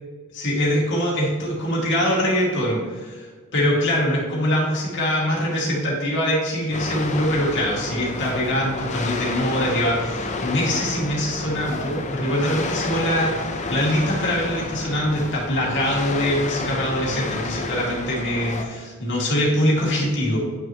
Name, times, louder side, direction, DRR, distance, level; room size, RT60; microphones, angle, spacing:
voice 1, 0.3-20.4, equal, 60° left, -3 dB, 2.1 m, -23 dB
sound 1, 6.7-18.7, left 3 dB, 35° left, 0.7 m, -30 dB
9.9 x 6.2 x 3.0 m, 1.5 s
head